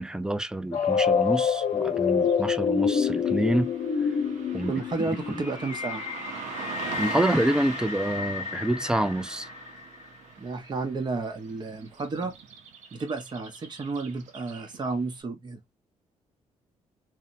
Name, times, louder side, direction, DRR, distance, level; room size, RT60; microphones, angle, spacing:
voice 1, 0.0-3.7 4.5-4.7 5.3-5.4 7.0-9.5, right 1 dB, 5° right, 0.3 m, -27 dB
sound 1, 0.7-9.7, left 7 dB, 60° left, 0.6 m, -28 dB
Car passing by / Traffic noise roadway noise, 0.7-15.0, right 5 dB, 80° right, 0.7 m, -42 dB
voice 2, 4.7-6.1 10.4-12.3 12.9-15.6, right 3 dB, 35° right, 0.7 m, -32 dB
2.9 x 2.1 x 2.5 m
cardioid pair, 100°, 12 cm